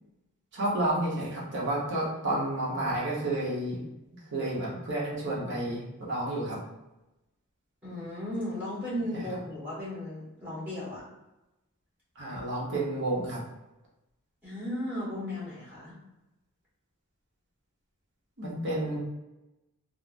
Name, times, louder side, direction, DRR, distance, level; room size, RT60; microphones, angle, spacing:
voice 1, 0.5-3.8 4.3-6.6 9.1-9.4 12.2-13.4 18.4-19.0, right 1 dB, 55° right, -4 dB, 0.8 m, -30 dB
voice 2, 7.8-11.0 14.4-16.0, left 1 dB, 10° right, -8 dB, 1.4 m, -35 dB
3.2 x 2.0 x 2.5 m, 0.98 s
head